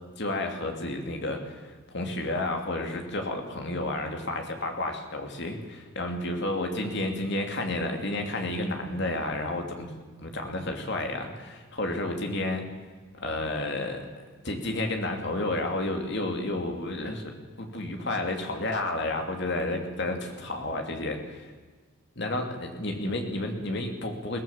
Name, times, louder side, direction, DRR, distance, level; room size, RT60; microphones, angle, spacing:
voice 1, 0.2-9.9 10.2-12.6 13.1-17.3 17.6-21.5 22.2-24.4, left 2 dB, 55° left, 3 dB, 2.8 m, -31 dB
22.0 x 17.0 x 7.3 m, 1.4 s
head